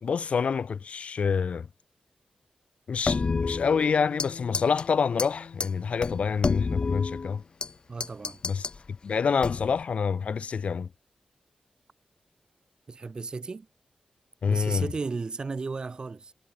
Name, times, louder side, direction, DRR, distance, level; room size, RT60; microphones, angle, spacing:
voice 1, 0.0-1.7 2.9-7.4 8.4-8.7 9.0-10.9 14.4-14.9, left 6 dB, 65° left, 1.2 m, -27 dB
Bass guitar, 3.1-7.5, left 6 dB, 80° left, 3.1 m, -45 dB
sound 1, 3.1-4.3 4.5-4.8 5.2-5.3 5.6-5.7 6.0-7.7 8.0-8.8 9.4-9.8, left 4 dB, 40° left, 2.3 m, -29 dB
voice 2, 7.9-8.4 12.9-13.7 14.5-16.3, right 4 dB, 40° right, 1.4 m, -34 dB
wide cardioid pair, 150°, 2 cm